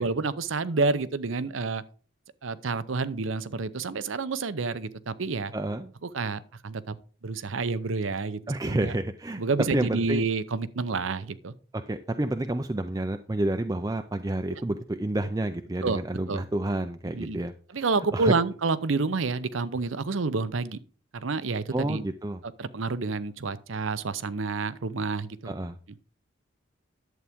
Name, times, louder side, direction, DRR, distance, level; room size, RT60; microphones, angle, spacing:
voice 1, 0.0-1.8 2.4-5.5 6.0-7.0 7.2-9.0 9.4-11.5 14.5-14.6 15.8-16.0 16.3-16.5 17.1-17.4 17.7-20.8 21.1-22.0 22.4-25.5, right 4 dB, 85° right, 0.7 m, -29 dB
voice 2, 5.5-5.9 8.5-9.4 9.7-10.2 11.9-17.5 18.1-18.3 21.7-22.4 25.4-25.7, right 1 dB, 20° right, 0.4 m, -29 dB
11.0 x 8.1 x 3.6 m
head